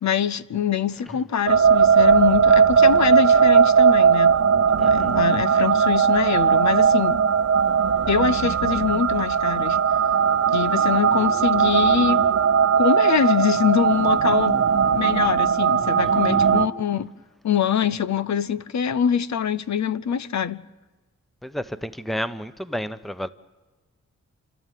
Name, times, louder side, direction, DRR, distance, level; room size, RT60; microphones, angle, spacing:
voice 1, 0.0-4.4 4.8-7.2 8.1-9.8 10.5-12.2 12.8-14.6 14.9-17.1 17.4-20.6, left 8 dB, 70° left, 0.7 m, -24 dB
sound 1, 1.5-16.7, right 6 dB, 55° right, 0.8 m, -18 dB
voice 2, 4.8-5.2 16.0-16.5 21.4-23.3, equal, ahead, 0.9 m, -32 dB
29.0 x 13.0 x 9.3 m
wide cardioid pair, 105°, 29 cm